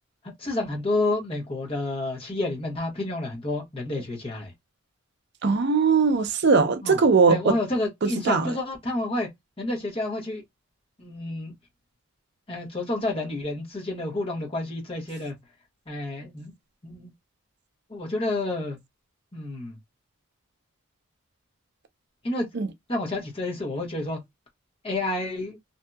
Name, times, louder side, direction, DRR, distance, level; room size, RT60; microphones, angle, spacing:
voice 1, 0.4-4.5 6.8-7.0 7.3-9.3 9.6-10.4 11.0-11.5 12.5-15.4 15.9-16.5 16.8-17.1 17.9-18.8 19.3-19.8 22.2-22.5 22.9-24.2 24.8-25.6, left 2 dB, 25° left, 1.1 m, -29 dB
voice 2, 5.4-7.6 8.0-8.5 22.5-22.7, right 4 dB, 50° right, 0.5 m, -20 dB
2.7 x 2.7 x 2.2 m
head